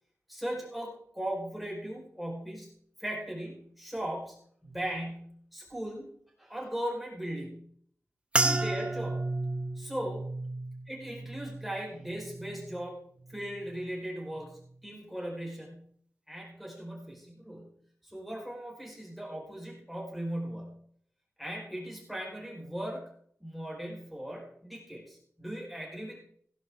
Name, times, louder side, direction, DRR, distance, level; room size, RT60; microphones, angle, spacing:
voice 1, 0.3-2.7 3.0-4.4 4.6-6.1 6.4-7.7 8.3-9.2 9.8-10.2 10.9-13.0 13.3-15.9 16.3-17.7 18.0-20.8 21.4-23.1 23.4-26.2, right 1 dB, ahead, -3 dB, 4.7 m, -38 dB
sound 1, 8.3-12.9 13.2-13.8 14.4-14.7, right 2 dB, 20° right, 0.8 m, -33 dB
17.0 x 10.5 x 3.8 m, 0.62 s
wide cardioid pair, 130°, 5 cm